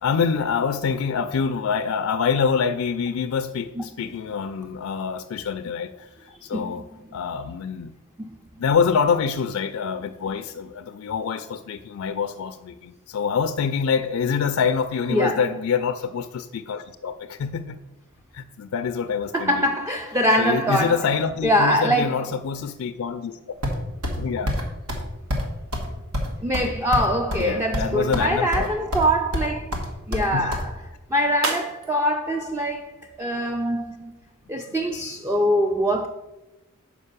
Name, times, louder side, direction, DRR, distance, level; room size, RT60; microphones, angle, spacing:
voice 1, 0.0-6.8 7.1-7.9 8.6-17.8 18.3-19.7 20.4-23.4 24.2-24.5 27.4-28.7 30.3-30.5, left 6 dB, 70° left, 0.4 m, -26 dB
voice 2, 15.1-15.4 19.3-21.1 21.4-22.2 26.4-29.8 30.1-30.7 31.1-34.1 34.5-36.1, equal, 10° right, 0.3 m, -23 dB
sound 1, 23.6-24.2 24.5-24.6 24.9-25.0 25.3-25.5 25.7-25.9 26.1-27.5 27.7-28.3 28.5-29.1 29.3-30.6, left 1 dB, 90° right, 1.4 m, -26 dB
sound 2, 31.3-33.7, right 3 dB, 70° right, 1.0 m, -37 dB
5.4 x 5.1 x 6.6 m
head